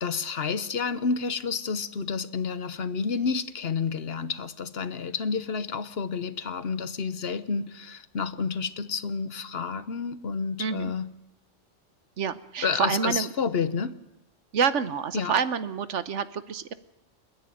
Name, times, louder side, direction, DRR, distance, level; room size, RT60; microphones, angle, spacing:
voice 1, 0.0-11.1 12.6-13.9 15.1-15.3, left 5 dB, 55° left, 14 dB, 1.1 m, -30 dB
voice 2, 10.6-10.9 12.2-13.3 14.5-16.7, right 6 dB, 75° right, 14 dB, 1.3 m, -27 dB
30.0 x 10.5 x 9.2 m, 0.90 s
omnidirectional pair, 1.2 m